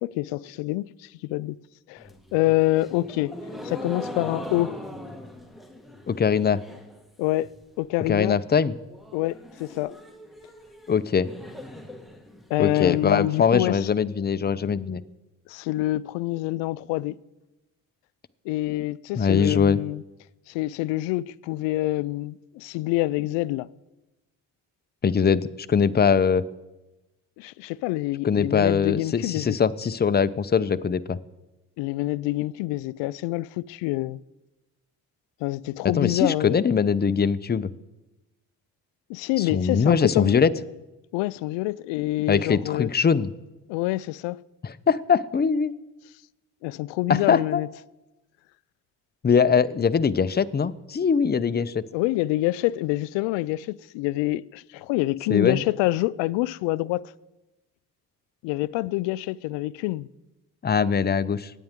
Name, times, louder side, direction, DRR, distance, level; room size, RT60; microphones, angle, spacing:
voice 1, 0.0-1.6 1.9-3.4 3.6-4.8 7.2-8.4 9.1-10.0 12.5-13.9 15.5-17.2 18.5-20.0 20.5-23.7 27.4-29.6 31.8-34.2 35.4-36.6 39.1-40.4 41.1-42.9 43.7-44.4 46.6-47.7 51.9-57.1 58.4-60.1, left 18 dB, 80° left, 0.5 m, -26 dB
sound 1, 2.0-7.0 7.3-7.8 8.1-8.2 8.5-8.6 8.9-12.9, left 1 dB, ahead, 1.9 m, -40 dB
voice 2, 6.1-6.6 8.1-8.8 10.9-11.3 12.6-15.0 19.2-19.8 25.0-26.4 28.2-31.2 36.0-37.7 39.4-40.5 42.3-43.3 44.6-45.7 47.1-47.6 49.2-51.8 55.3-55.6 60.6-61.5, left 6 dB, 25° left, 0.7 m, -22 dB
25.0 x 9.2 x 3.7 m
supercardioid pair, 60°, 43 cm